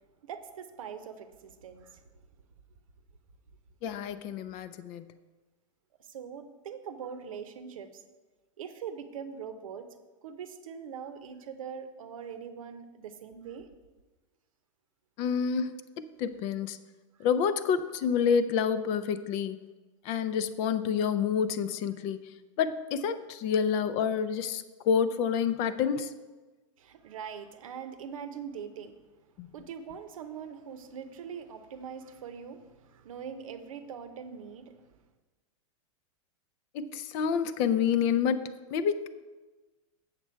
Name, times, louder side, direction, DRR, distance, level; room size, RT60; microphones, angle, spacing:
voice 1, 0.2-2.0 6.0-8.0 8.6-9.9 10.2-13.7 26.8-29.0 29.5-34.8, right 7 dB, 85° right, 9 dB, 0.8 m, -42 dB
voice 2, 3.8-5.1 15.2-16.8 17.2-19.6 20.0-22.3 22.6-26.1 29.4-29.5 36.7-39.1, left 7 dB, 40° left, 13 dB, 0.5 m, -28 dB
7.3 x 6.9 x 4.4 m, 1.2 s
supercardioid pair, 140°, 17 cm